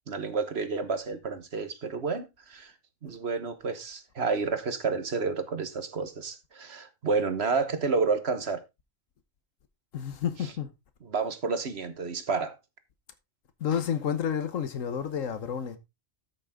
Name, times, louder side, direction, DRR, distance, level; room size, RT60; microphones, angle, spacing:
voice 1, 0.1-2.7 3.0-8.6 10.4-10.5 11.0-12.5, right 4 dB, 55° right, 1.5 m, -30 dB
voice 2, 9.9-10.7 13.6-15.8, left 8 dB, 90° left, 1.5 m, -30 dB
13.5 x 6.8 x 3.6 m
omnidirectional pair, 1.3 m